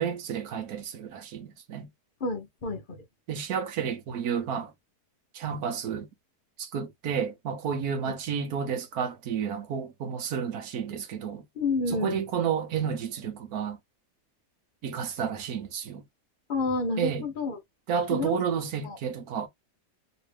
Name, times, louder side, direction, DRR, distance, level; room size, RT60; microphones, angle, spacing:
voice 1, 0.0-1.9 3.3-4.7 5.3-6.1 6.6-11.4 11.9-13.8 14.8-16.0 17.0-17.3 17.9-19.5, right 7 dB, 65° right, 1.2 m, -31 dB
voice 2, 2.2-3.0 8.1-8.2 11.6-12.2 16.5-17.6 18.1-18.4 18.8-19.0, left 3 dB, 45° left, 0.7 m, -29 dB
3.2 x 2.9 x 3.2 m
omnidirectional pair, 1.8 m